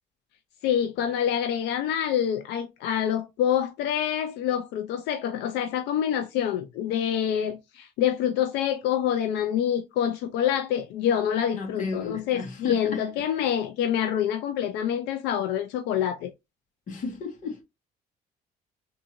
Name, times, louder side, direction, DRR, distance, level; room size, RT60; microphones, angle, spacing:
voice 1, 0.6-16.3, left 9 dB, 90° left, 0.5 m, -26 dB
voice 2, 11.5-13.0 16.9-17.6, left 3 dB, 50° left, 1.6 m, -34 dB
3.7 x 2.7 x 2.7 m
cardioid pair, 110°, 17 cm